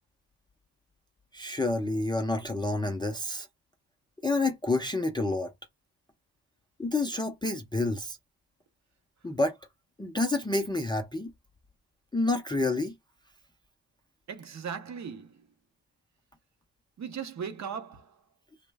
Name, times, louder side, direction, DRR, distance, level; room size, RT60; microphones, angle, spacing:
voice 1, 1.3-3.5 4.2-5.5 6.8-8.2 9.2-9.6 10.0-11.3 12.1-12.9, left 2 dB, 10° left, 0.4 m, -28 dB
voice 2, 14.3-15.4 17.0-18.1, right 7 dB, 45° right, 0.6 m, -38 dB
3.0 x 2.1 x 3.3 m
wide cardioid pair, 135°, 41 cm